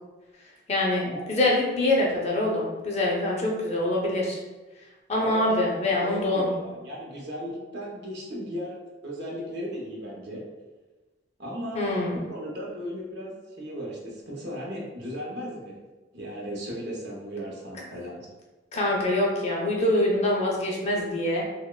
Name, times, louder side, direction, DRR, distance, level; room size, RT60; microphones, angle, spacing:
voice 1, 0.7-4.4 5.1-6.5 11.7-12.1 18.7-21.4, left 1 dB, 35° left, -2 dB, 0.4 m, -25 dB
voice 2, 5.1-10.4 11.4-15.8 16.1-18.3, equal, 60° right, -3 dB, 0.6 m, -36 dB
2.8 x 2.0 x 2.2 m, 1.2 s
head